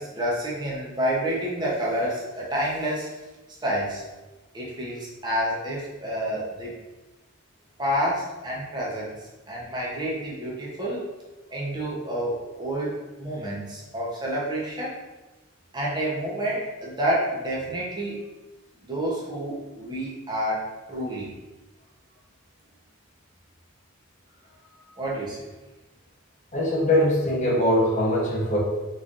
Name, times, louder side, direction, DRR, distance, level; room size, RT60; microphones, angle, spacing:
voice 1, 0.0-3.1 3.6-4.0 4.5-6.7 7.8-11.0 11.5-15.0 15.7-18.2 18.8-21.3 25.0-25.5, equal, 20° right, -5 dB, 0.8 m, -29 dB
voice 2, 26.5-28.6, left 1 dB, 35° left, -5 dB, 0.9 m, -22 dB
3.9 x 3.2 x 2.5 m, 1.1 s
head